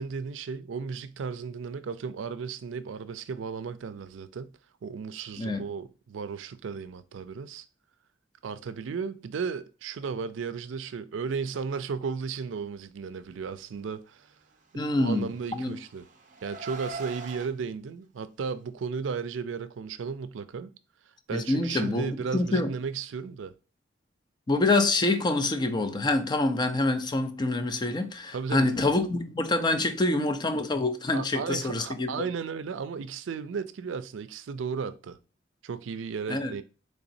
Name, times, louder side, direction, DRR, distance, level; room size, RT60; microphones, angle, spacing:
voice 1, 0.0-4.5 4.8-7.7 8.4-14.3 15.0-16.1 16.4-20.7 21.3-23.5 28.3-28.7 31.1-35.2 35.6-36.6, right 5 dB, 80° right, 0.4 m, -34 dB
voice 2, 14.7-15.8 21.3-22.7 24.5-32.3 36.3-36.5, left 2 dB, 25° left, 0.4 m, -26 dB
Car, 15.0-17.5, right 3 dB, 45° right, 0.6 m, -41 dB
3.9 x 3.4 x 2.6 m
head